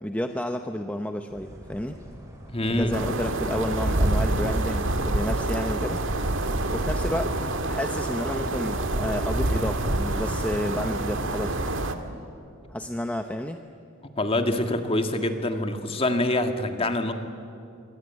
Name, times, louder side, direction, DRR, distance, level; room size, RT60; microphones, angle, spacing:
voice 1, 0.0-2.0 2.7-6.0 6.7-7.3 7.6-11.6 12.7-13.6, equal, 5° left, 6 dB, 0.8 m, -30 dB
sound 1, 1.3-6.8, equal, 15° right, 3.9 m, -43 dB
voice 2, 2.5-3.0 14.2-17.1, left 1 dB, 25° left, 6 dB, 1.8 m, -25 dB
sound 2, 2.9-12.0, right 2 dB, 60° right, 1.9 m, -27 dB
26.5 x 24.0 x 9.3 m, 2.6 s
head